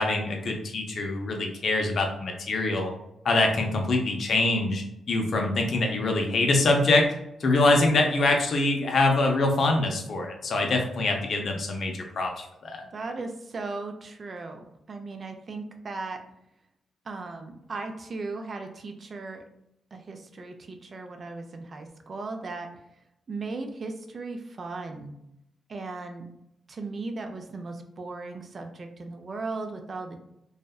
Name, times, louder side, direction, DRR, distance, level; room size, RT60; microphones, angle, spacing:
voice 1, 0.0-2.9 3.2-7.1 7.4-12.8, left 2 dB, 60° left, 2 dB, 0.5 m, -24 dB
voice 2, 12.9-16.2 17.1-19.4 19.9-22.7 23.3-25.1 25.7-26.3 26.7-30.2, right 3 dB, 50° right, 5 dB, 0.4 m, -37 dB
2.7 x 2.1 x 2.3 m, 0.82 s
supercardioid pair, 50°, 0 cm